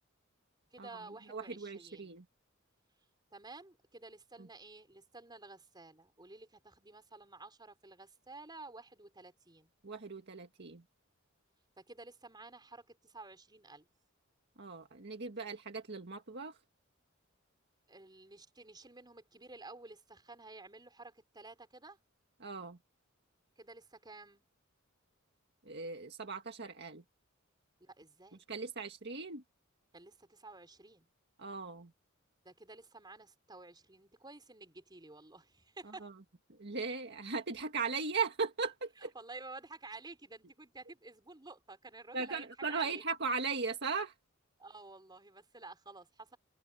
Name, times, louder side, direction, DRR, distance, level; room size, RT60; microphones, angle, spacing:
voice 1, 0.7-2.2 3.3-9.7 11.8-13.9 17.9-22.0 23.6-24.4 27.8-28.4 29.9-31.1 32.4-36.1 39.0-43.0 44.6-46.4, right 3 dB, 20° right, 4.8 m, -52 dB
voice 2, 1.3-2.3 4.4-4.5 9.8-10.8 14.6-16.6 22.4-22.8 25.7-27.0 28.5-29.4 31.4-31.9 36.0-36.1 36.5-39.1 42.1-44.1, right 4 dB, 55° right, 1.8 m, -38 dB
head